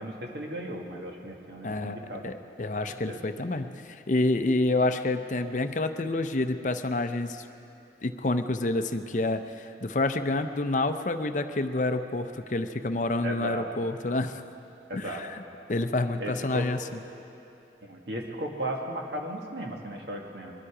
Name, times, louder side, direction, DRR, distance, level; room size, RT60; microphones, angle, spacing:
voice 1, 0.0-2.3 2.8-3.2 13.2-13.7 14.9-15.2 16.2-16.7 17.8-20.5, right 1 dB, 75° right, 1 dB, 1.8 m, -36 dB
voice 2, 1.6-7.5 8.0-14.4 14.9-15.4 15.7-16.8, left 2 dB, 45° left, 9 dB, 0.6 m, -28 dB
21.5 x 13.0 x 4.9 m, 2.8 s
head